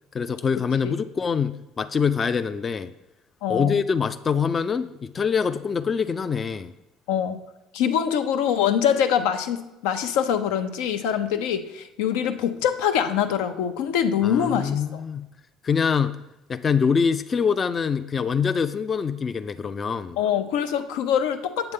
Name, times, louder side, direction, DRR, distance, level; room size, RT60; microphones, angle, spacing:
voice 1, 0.1-2.9 3.5-6.7 14.2-15.3 15.6-16.2 16.5-20.2, left 6 dB, 30° left, 11 dB, 0.3 m, -24 dB
voice 2, 3.4-3.8 7.1-7.4 7.7-15.0 20.2-21.7, left 8 dB, 85° left, 8 dB, 0.6 m, -24 dB
8.0 x 7.9 x 3.7 m, 0.96 s
cardioid pair, 120°, 0 cm